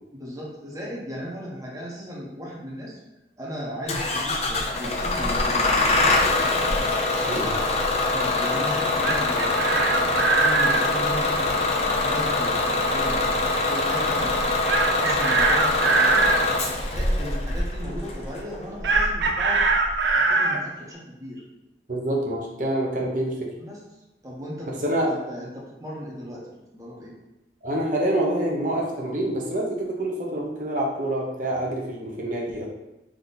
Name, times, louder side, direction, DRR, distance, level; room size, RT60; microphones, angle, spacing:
voice 1, 0.1-3.0 3.4-5.8 8.1-13.2 13.7-14.3 14.9-16.3 16.9-19.7 20.0-21.4 23.6-23.8 24.2-27.1, equal, 20° right, -4 dB, 0.9 m, -36 dB
Bus / Engine starting, 3.9-20.1, left 2 dB, 35° left, 0.5 m, -24 dB
Chicken rooster, 8.8-10.8 14.7-16.4 18.8-20.6, right 3 dB, 80° right, 0.5 m, -22 dB
voice 2, 21.9-23.5 24.7-25.1 27.6-32.7, right 1 dB, 45° right, -2 dB, 0.8 m, -26 dB
3.6 x 2.9 x 4.0 m, 0.96 s
head